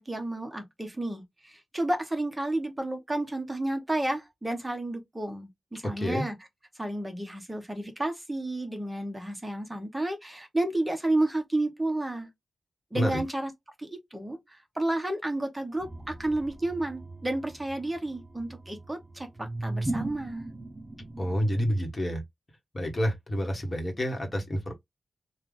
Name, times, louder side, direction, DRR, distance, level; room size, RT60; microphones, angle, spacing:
voice 1, 0.0-6.4 6.8-12.3 12.9-13.5 13.8-20.5, right 1 dB, 10° right, 1.0 m, -31 dB
voice 2, 5.8-6.2 12.9-13.2 21.2-22.2 22.7-24.7, equal, 25° left, 1.2 m, -28 dB
sound 1, 15.8-21.5, right 2 dB, 30° right, 0.5 m, -37 dB
3.3 x 2.3 x 3.7 m
wide cardioid pair, 135°, 0 cm